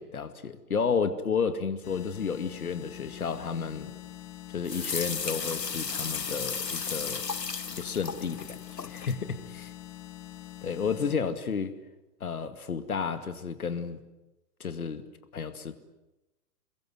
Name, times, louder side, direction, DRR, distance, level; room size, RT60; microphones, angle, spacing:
voice 1, 0.0-3.9 4.5-7.2 7.7-9.7 10.6-11.7 12.2-14.0 14.6-15.0 15.3-15.7, left 6 dB, 60° left, 10 dB, 2.3 m, -32 dB
sound 1, 1.8-11.2, left 14 dB, 25° left, 2.5 m, -45 dB
sound 2, 4.7-9.1, left 5 dB, 85° left, 0.9 m, -34 dB
27.5 x 22.5 x 9.4 m, 1.0 s
figure-of-eight pair, 115°, 48 cm